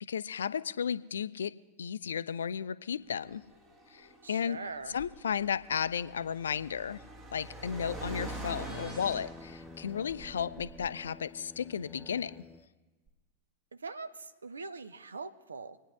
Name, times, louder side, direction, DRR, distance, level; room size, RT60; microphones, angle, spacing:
voice 1, 0.1-1.5 1.8-3.4 3.9-4.6 4.9-7.0 7.3-12.4, left 7 dB, 65° left, 16 dB, 0.4 m, -34 dB
Car, 3.2-11.1, right 2 dB, 20° right, 1.6 m, -46 dB
voice 2, 4.2-5.0 13.7-15.8, right 4 dB, 75° right, 10 dB, 0.6 m, -42 dB
sound 1, 7.4-12.7, left 3 dB, 10° left, 0.6 m, -50 dB
sound 2, 7.9-9.2 13.1-13.2, left 1 dB, 40° right, 3.7 m, -46 dB
27.0 x 9.7 x 3.3 m, 1.3 s
figure-of-eight pair, 90°, 0 cm